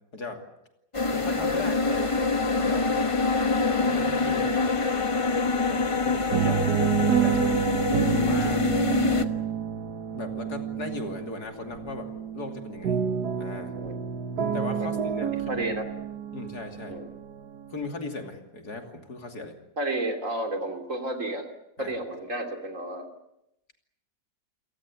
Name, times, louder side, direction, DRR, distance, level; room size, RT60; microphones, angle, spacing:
voice 1, 0.1-0.4 1.1-2.2 2.6-2.9 3.8-4.6 5.7-6.6 7.0-7.7 8.1-8.7 10.1-13.0 13.4-13.7 14.5-15.6 16.3-17.0 17.7-19.6 21.8-22.0, left 3 dB, 60° left, 4 dB, 3.3 m, -37 dB
sound 1, 0.9-9.2, left 4 dB, 20° left, 1.0 m, -25 dB
sound 2, 4.0-4.8 5.1-17.8, right 8 dB, 65° right, 1.9 m, -29 dB
voice 2, 15.5-15.8 16.9-17.1 19.8-21.5 21.8-23.1, right 1 dB, 45° right, 4 dB, 3.5 m, -31 dB
28.5 x 18.0 x 8.5 m, 0.84 s
omnidirectional pair, 1.9 m